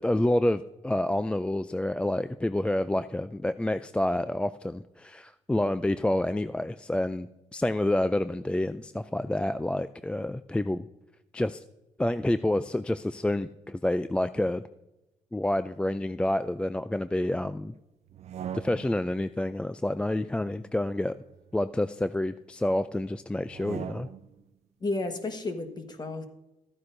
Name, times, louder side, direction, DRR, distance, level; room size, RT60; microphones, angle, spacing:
voice 1, 0.0-10.9 11.3-11.6 12.0-14.6 15.3-17.7 18.5-21.1 21.5-24.1, left 1 dB, 10° left, 12 dB, 0.3 m, -28 dB
sound 1, 18.1-19.2 20.4-22.1 23.4-24.4, right 9 dB, 60° right, 0.5 m, -42 dB
voice 2, 24.8-26.3, left 2 dB, 35° left, 7 dB, 1.3 m, -32 dB
13.5 x 9.5 x 2.6 m, 0.95 s
cardioid pair, 85°, 12 cm